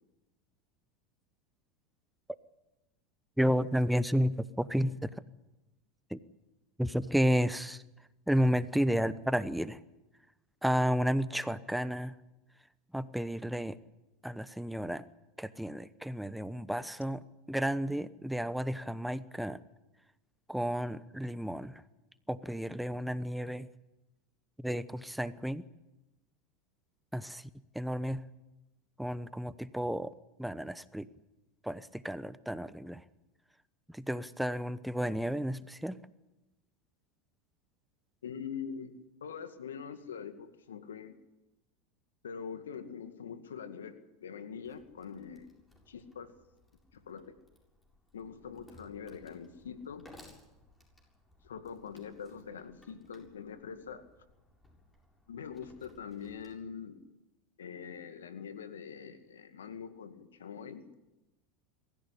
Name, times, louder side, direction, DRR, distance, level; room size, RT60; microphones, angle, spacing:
voice 1, 3.4-5.1 6.1-6.2 6.8-7.8 8.3-9.8 10.6-12.1 12.9-13.8 14.2-15.1 15.4-19.6 20.5-21.8 22.3-23.7 24.6-25.6 27.1-27.5 27.7-28.2 29.0-30.1 30.4-31.1 31.6-33.0 33.9-36.0, equal, 5° right, 15 dB, 0.9 m, -32 dB
voice 2, 38.2-38.9 39.2-41.2 42.2-45.5 45.9-46.3 46.9-47.4 48.1-50.1 51.4-54.1 55.3-57.0 57.6-60.8, left 7 dB, 90° left, 9 dB, 2.1 m, -43 dB
Wood, 44.6-56.6, left 1 dB, 15° left, 7.5 m, -61 dB
23.5 x 15.0 x 10.0 m, 0.99 s
hypercardioid pair, 95°, 0 cm